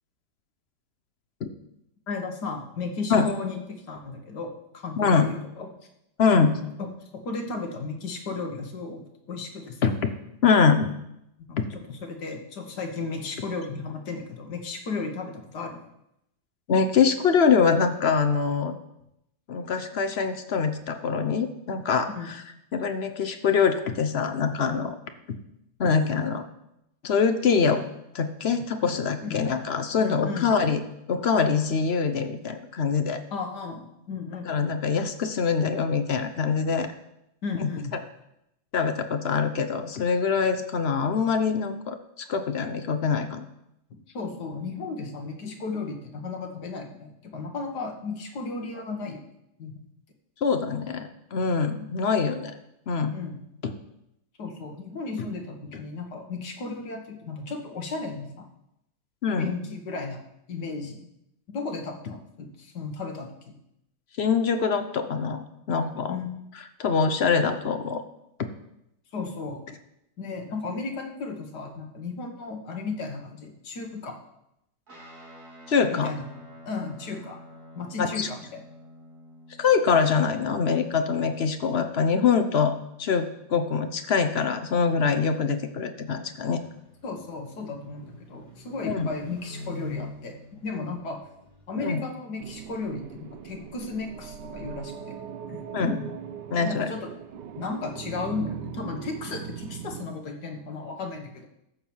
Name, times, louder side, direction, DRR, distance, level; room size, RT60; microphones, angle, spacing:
voice 1, 2.1-5.7 7.1-9.8 11.5-15.8 22.2-22.3 29.2-29.4 30.0-30.5 33.3-34.6 37.4-37.9 44.1-49.2 49.6-49.8 53.1-53.4 54.4-58.5 59.4-60.2 60.5-61.1 61.5-63.6 66.1-66.3 69.1-69.6 70.2-74.2 75.9-76.3 76.6-77.4 77.8-78.6 87.0-90.3 90.6-91.2 91.7-95.2 95.5-96.1 96.6-97.1 97.6-101.5, left 4 dB, 75° left, 3 dB, 2.0 m, -34 dB
voice 2, 6.2-6.6 9.8-10.1 10.4-10.9 11.6-11.7 16.7-18.8 19.5-22.4 22.7-24.9 25.3-25.4 25.8-26.5 27.0-27.8 28.1-33.2 34.5-36.9 37.6-38.0 38.7-43.4 50.4-52.6 52.9-53.2 53.6-53.7 55.2-55.3 59.2-59.5 64.2-66.2 66.8-68.0 75.7-76.1 78.0-78.3 79.6-86.6 88.8-89.2 91.8-92.0 95.7-96.0 96.5-96.9, left 5 dB, 50° left, 8 dB, 0.8 m, -24 dB
Guitar, 74.9-83.6, equal, 65° right, 3.2 m, -50 dB
sound 1, 86.2-91.7, left 2 dB, 20° left, 2.2 m, -44 dB
sound 2, 92.4-100.1, right 8 dB, 85° right, 1.4 m, -40 dB
13.5 x 4.6 x 7.1 m, 0.82 s
omnidirectional pair, 1.8 m